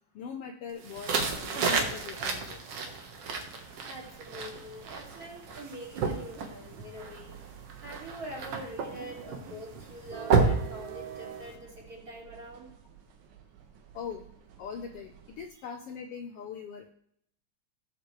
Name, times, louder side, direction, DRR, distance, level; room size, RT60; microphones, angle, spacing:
voice 1, 0.1-2.6 13.9-14.2 14.6-16.9, left 6 dB, 80° left, 5 dB, 1.3 m, -41 dB
sound 1, 0.8-11.5, right 4 dB, 55° right, 2.0 m, -32 dB
sound 2, 3.7-15.5, right 9 dB, 75° right, 2.5 m, -50 dB
voice 2, 3.9-7.4 7.8-12.7, right 1 dB, 30° right, -3 dB, 2.9 m, -44 dB
18.0 x 7.3 x 3.2 m, 0.69 s
omnidirectional pair, 3.6 m